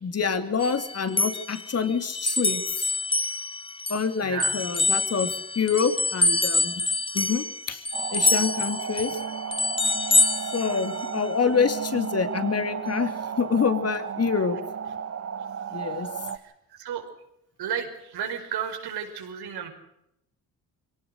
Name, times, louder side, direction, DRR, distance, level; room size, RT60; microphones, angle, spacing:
voice 1, 0.0-2.9 3.9-6.8 7.1-7.8 8.1-9.2 10.5-14.6 15.7-16.1, left 5 dB, 40° left, 10 dB, 2.8 m, -26 dB
sound 1, 0.6-4.1 4.4-11.3, left 3 dB, 15° left, 1.3 m, -26 dB
voice 2, 4.2-4.6 16.8-17.0 17.6-19.7, right 8 dB, 80° right, 4 dB, 5.1 m, -32 dB
sound 2, 7.9-16.4, right 7 dB, 40° right, 1.2 m, -34 dB
23.5 x 18.0 x 6.6 m, 0.81 s
cardioid pair, 90°, 38 cm